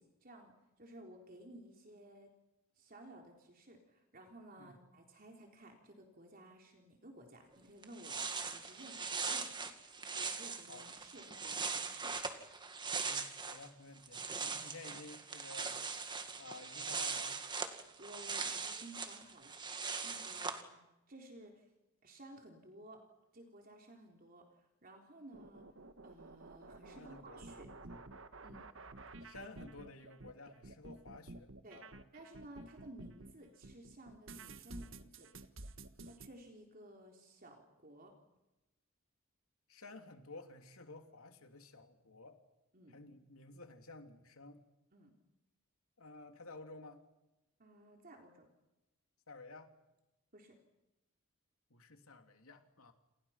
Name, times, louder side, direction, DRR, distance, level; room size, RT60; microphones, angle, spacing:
voice 1, 0.0-2.3 2.8-12.2 17.8-21.7 22.0-23.0 23.3-25.7 26.0-27.8 28.4-28.7 29.3-29.5 31.6-31.8 32.1-35.3 36.0-38.2 42.7-43.0 44.9-45.1 47.6-48.5 50.3-50.6, right 1 dB, 45° right, 2 dB, 3.8 m, -56 dB
sound 1, 7.5-7.6 7.8-13.7 14.0-20.6, right 5 dB, 20° right, 2.0 m, -41 dB
voice 2, 13.0-15.8 16.4-17.4 19.8-19.9 20.3-20.5 26.9-28.1 29.2-32.0 39.7-42.4 42.9-44.6 46.0-47.0 49.3-49.7 51.7-52.9, left 3 dB, 80° left, 5 dB, 3.1 m, -53 dB
sound 2, 25.3-33.3 33.6-36.3, right 2 dB, 65° right, 1.5 m, -51 dB
29.5 x 28.0 x 5.9 m, 0.98 s
head